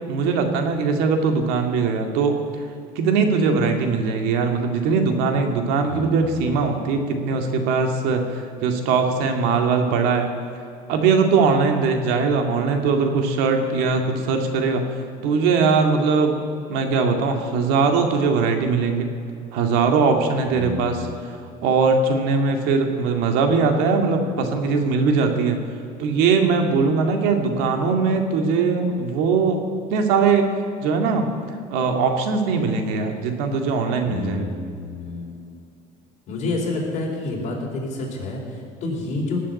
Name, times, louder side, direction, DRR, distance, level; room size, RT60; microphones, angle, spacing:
voice 1, 0.1-2.4 3.0-10.3 10.9-14.8 15.2-16.4 16.7-19.1 19.5-21.1 21.6-25.6 26.0-29.6 29.9-30.5 30.8-31.3 31.7-34.5, right 4 dB, 85° right, 4 dB, 2.2 m, -20 dB
voice 2, 5.9-6.8 20.5-21.2 34.0-35.3 36.3-39.4, left 3 dB, 50° left, -1 dB, 4.5 m, -29 dB
18.5 x 7.6 x 9.6 m, 2.5 s
cardioid pair, 140°, 16 cm